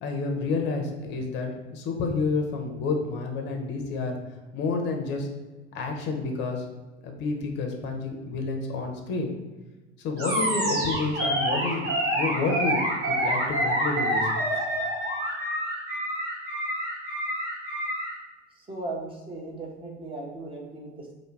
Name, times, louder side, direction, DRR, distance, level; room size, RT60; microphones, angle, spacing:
voice 1, 0.0-4.2 4.5-5.3 5.7-6.6 7.0-9.3 10.0-14.6, left 3 dB, 35° left, 3 dB, 0.5 m, -29 dB
Animal, 10.2-18.1, right 1 dB, 55° right, 1.1 m, -27 dB
voice 2, 18.6-21.1, right 2 dB, 15° right, -1 dB, 0.5 m, -37 dB
2.2 x 2.1 x 3.1 m, 1.2 s
figure-of-eight pair, 75°, 34 cm